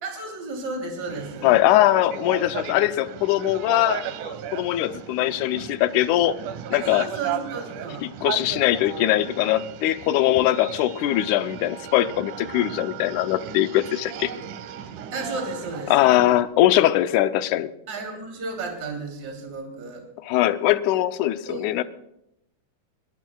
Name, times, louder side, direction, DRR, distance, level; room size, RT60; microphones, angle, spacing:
voice 1, 0.0-1.5 6.7-8.0 15.1-16.1 17.9-20.0 21.5-21.6, right 3 dB, 30° right, 1 dB, 3.2 m, -33 dB
sound 1, 1.1-16.4, right 9 dB, 75° right, 2.2 m, -36 dB
voice 2, 1.4-6.3 6.7-7.1 8.0-14.3 15.9-17.7 20.2-21.8, left 14 dB, 75° left, 11 dB, 1.9 m, -21 dB
23.0 x 18.0 x 2.3 m, 0.81 s
omnidirectional pair, 3.9 m